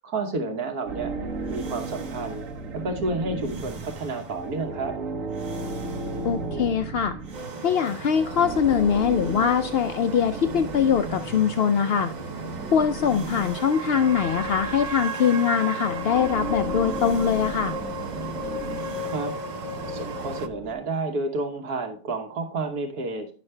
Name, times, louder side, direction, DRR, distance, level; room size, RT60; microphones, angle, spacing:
voice 1, 0.0-1.1 1.5-2.4 2.8-4.9 19.0-19.3 19.8-23.3, right 3 dB, 80° right, 4 dB, 1.6 m, -30 dB
sound 1, 0.9-7.9 8.2-20.7, right 3 dB, 60° right, 1.5 m, -35 dB
voice 2, 6.2-7.2 7.6-12.1 12.7-17.8, left 7 dB, 70° left, 8 dB, 0.5 m, -22 dB
sound 2, 7.3-20.5, right 1 dB, 40° right, 0.7 m, -34 dB
10.5 x 6.4 x 3.3 m, 0.39 s
omnidirectional pair, 1.6 m